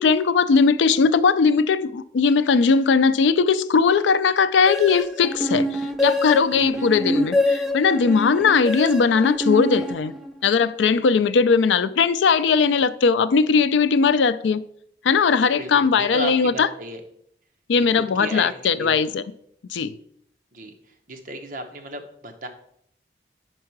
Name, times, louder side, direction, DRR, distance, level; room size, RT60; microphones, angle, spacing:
voice 1, 0.0-10.1 10.4-14.6 15.0-16.7 17.7-19.2 19.7-19.9, left 5 dB, 90° left, 0.4 m, -19 dB
sound 1, 4.7-10.5, left 1 dB, ahead, 0.5 m, -25 dB
voice 2, 6.6-7.0 15.6-17.0 17.9-19.0 20.5-22.5, right 1 dB, 45° right, 0.9 m, -35 dB
5.5 x 4.7 x 5.9 m
head